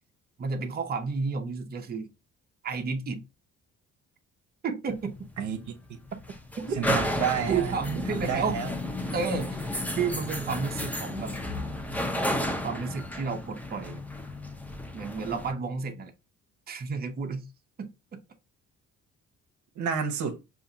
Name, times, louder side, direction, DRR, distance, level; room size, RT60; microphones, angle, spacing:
voice 1, 0.4-2.1 2.6-3.2 4.6-5.4 6.1-6.2 6.6-7.0 7.5-8.6 9.1-9.6 10.0-11.3 12.6-14.0 14.9-16.1 16.7-17.5 17.8-18.2, right 5 dB, 30° right, 0.6 m, -31 dB
sound 1, 4.9-15.5, left 1 dB, 5° left, 0.7 m, -33 dB
voice 2, 6.8-7.7 8.1-8.7 19.8-20.4, right 7 dB, 70° right, 0.7 m, -30 dB
4.9 x 2.5 x 2.7 m
cardioid pair, 90°, 30 cm